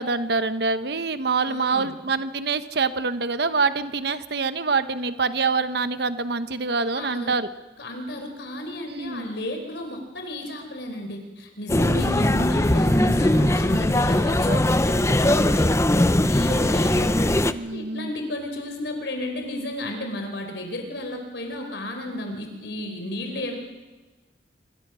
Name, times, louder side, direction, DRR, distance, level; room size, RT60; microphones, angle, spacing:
voice 1, 0.0-7.5 8.9-9.3 11.7-12.2 14.4-14.6 17.5-18.1, right 4 dB, 60° right, 11 dB, 1.1 m, -26 dB
voice 2, 1.5-1.9 6.9-7.3 7.8-23.6, left 1 dB, 65° left, 4 dB, 4.3 m, -33 dB
sound 1, 11.7-17.5, left 1 dB, 15° left, 0.7 m, -20 dB
26.5 x 24.0 x 6.3 m, 1.2 s
head